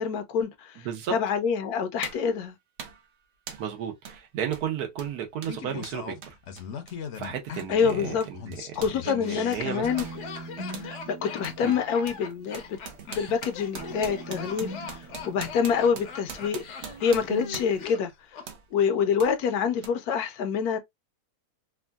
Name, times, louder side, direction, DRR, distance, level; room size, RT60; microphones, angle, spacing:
voice 1, 0.0-0.8 1.1-2.6 7.7-8.3 8.8-10.1 10.8-12.8 13.1-15.0 15.2-16.6 17.0-18.1 18.7-20.8, left 6 dB, 75° left, 1.1 m, -26 dB
sound 1, 1.2-1.3 2.0-2.3 2.8-3.1 3.5-3.7 4.0-4.2 4.5-9.0 9.3-10.9 11.4-11.6 12.1-17.9 18.5-18.7 19.2-19.3 19.8-19.9, right 6 dB, 55° right, 0.8 m, -43 dB
voice 2, 3.6-6.3 7.1-8.7 9.0-9.9 11.6-11.8, right 9 dB, 80° right, 1.3 m, -33 dB
Laughter, 5.5-18.5 18.7-18.8, left 7 dB, 60° left, 0.8 m, -40 dB
sound 2, 9.8-13.5 13.8-16.6 16.8-17.8, right 2 dB, 35° right, 0.4 m, -42 dB
3.5 x 2.2 x 2.3 m
omnidirectional pair, 1.6 m